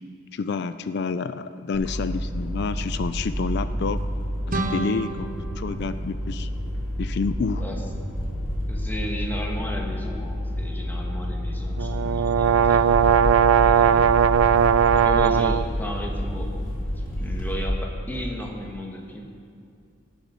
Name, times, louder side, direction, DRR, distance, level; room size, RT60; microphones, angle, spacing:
voice 1, 0.3-4.0 4.5-6.5 7.0-7.6, left 5 dB, 55° left, 13 dB, 0.4 m, -29 dB
sound 1, 1.7-17.6, equal, 90° left, 3.2 m, -29 dB
sound 2, 4.5-7.3, right 2 dB, 40° right, 0.8 m, -32 dB
voice 2, 8.7-12.9 13.7-14.1 14.9-16.5 16.9-19.2, equal, 10° left, 1 dB, 1.3 m, -34 dB
sound 3, 11.8-15.7, right 8 dB, 80° right, 0.3 m, -18 dB
17.5 x 7.2 x 5.6 m, 2.4 s
head